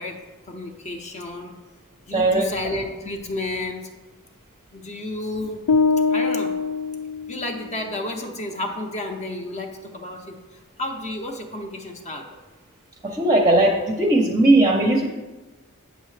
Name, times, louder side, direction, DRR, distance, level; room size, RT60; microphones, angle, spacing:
voice 1, 0.0-1.6 2.1-3.9 4.7-5.8 6.1-6.5 7.3-12.4, left 2 dB, 30° left, 3 dB, 0.6 m, -32 dB
voice 2, 2.1-2.5 13.0-15.1, right 2 dB, 15° right, 0 dB, 0.6 m, -18 dB
sound 1, 5.7-7.9, left 4 dB, 90° left, 0.3 m, -23 dB
8.1 x 6.5 x 3.2 m, 1.2 s
head